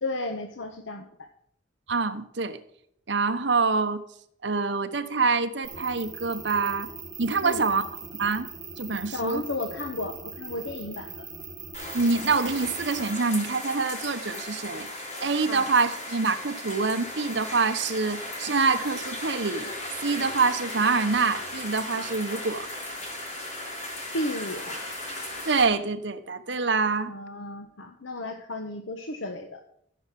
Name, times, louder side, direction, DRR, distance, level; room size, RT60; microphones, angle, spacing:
voice 1, 0.0-1.3 7.4-7.6 9.1-11.2 15.5-15.6 24.1-24.9 27.1-29.6, left 2 dB, 80° left, 5 dB, 1.1 m, -33 dB
voice 2, 1.9-2.6 3.1-4.0 4.4-6.9 7.2-8.5 8.8-9.4 11.9-14.9 15.2-19.7 20.0-22.7 25.4-27.1, right 4 dB, 65° right, 9 dB, 1.0 m, -26 dB
sound 1, 5.6-13.1, right 5 dB, 20° right, 2.0 m, -41 dB
sound 2, 11.7-25.6, left 1 dB, 35° left, 3.8 m, -36 dB
15.0 x 5.6 x 7.6 m, 0.69 s
head